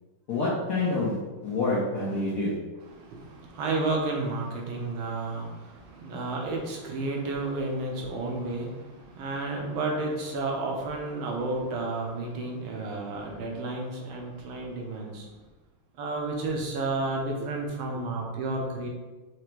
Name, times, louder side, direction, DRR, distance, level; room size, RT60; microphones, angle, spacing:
voice 1, 0.3-2.7, left 2 dB, 60° left, -7 dB, 1.2 m, -27 dB
voice 2, 2.9-15.3 16.0-18.9, right 2 dB, 70° right, 0 dB, 1.6 m, -31 dB
5.0 x 2.2 x 4.4 m, 1.2 s
omnidirectional pair, 2.4 m